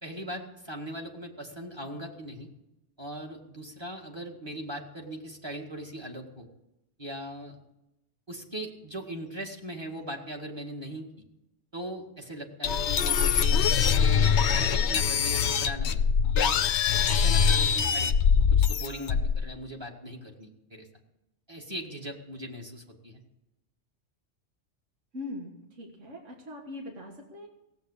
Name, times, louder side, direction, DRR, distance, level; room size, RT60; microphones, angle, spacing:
voice 1, 0.0-2.5 3.0-6.5 7.0-7.5 8.3-11.1 11.7-14.3 14.5-16.0 16.3-16.5 16.9-18.1 18.5-20.9 21.5-23.2, right 1 dB, 20° right, 2 dB, 2.1 m, -39 dB
sound 1, 12.6-19.4, left 6 dB, 70° left, 0.9 m, -23 dB
voice 2, 25.1-27.5, left 2 dB, 80° right, 0 dB, 2.1 m, -41 dB
17.0 x 8.0 x 8.4 m, 0.89 s
omnidirectional pair, 1.2 m